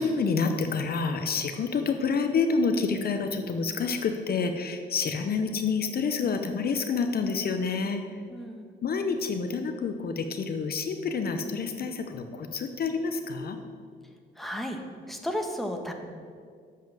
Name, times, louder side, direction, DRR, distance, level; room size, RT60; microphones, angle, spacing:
voice 1, 0.0-8.0 8.8-13.6, left 4 dB, 50° left, 6 dB, 0.7 m, -28 dB
voice 2, 8.3-8.6 14.4-14.8 15.1-15.9, equal, ahead, 3 dB, 1.1 m, -33 dB
7.3 x 5.6 x 7.5 m, 2.1 s
cardioid pair, 90°, 20 cm